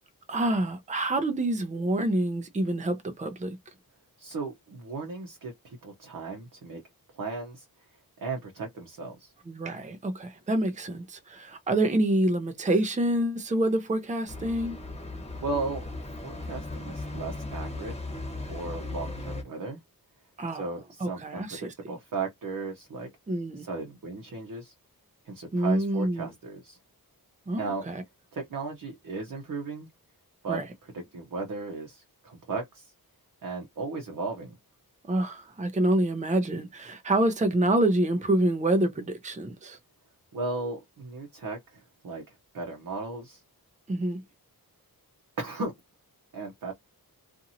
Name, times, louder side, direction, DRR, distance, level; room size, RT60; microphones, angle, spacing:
voice 1, 0.3-3.6 9.5-14.8 20.4-20.7 21.0-21.7 23.3-23.7 25.5-26.3 27.5-28.0 30.5-30.7 35.1-39.8 43.9-44.2, right 1 dB, 20° right, 0.5 m, -27 dB
voice 2, 4.2-6.8 7.1-7.6 8.2-9.3 15.4-15.8 16.2-18.0 18.5-19.8 20.5-23.1 23.6-24.7 25.2-26.8 27.6-27.8 28.3-29.9 30.4-32.9 33.4-34.5 40.3-42.2 42.5-43.4 45.4-45.7 46.3-46.7, right 3 dB, 60° right, 0.8 m, -36 dB
sound 1, 14.3-19.4, left 2 dB, 15° left, 1.1 m, -37 dB
2.7 x 2.6 x 2.7 m
wide cardioid pair, 115°, 36 cm